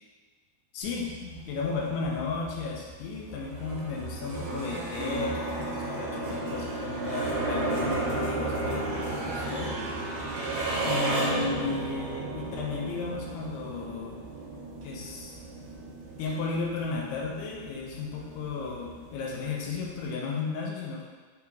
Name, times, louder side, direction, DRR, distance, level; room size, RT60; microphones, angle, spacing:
voice 1, 0.7-9.8 10.9-14.2 14.8-15.4 16.2-21.1, left 4 dB, 85° left, -2 dB, 2.6 m, -34 dB
sound 1, 0.8-20.1, right 2 dB, 70° right, 2.0 m, -34 dB
6.9 x 2.8 x 2.3 m, 1.4 s
omnidirectional pair, 4.7 m